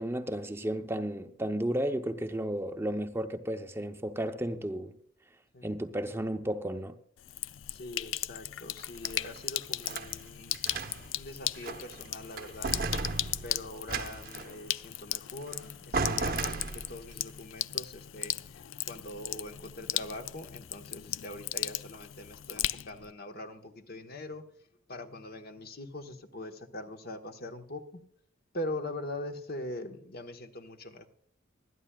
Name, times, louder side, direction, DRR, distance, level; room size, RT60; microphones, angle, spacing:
voice 1, 0.0-4.9 5.6-7.0, right 1 dB, 15° right, 0.7 m, -33 dB
voice 2, 5.5-5.8 7.7-10.6 11.1-12.8 13.4-24.5 24.9-28.0 28.5-31.1, left 1 dB, 55° left, 1.3 m, -42 dB
Sink (filling or washing), 7.2-23.1, left 14 dB, 80° left, 0.4 m, -37 dB
sound 1, 8.8-10.1 10.5-11.2 11.6-12.1 12.4-14.6 15.5-15.6 15.9-17.1, right 3 dB, 50° right, 0.9 m, -35 dB
25.0 x 10.0 x 2.3 m
head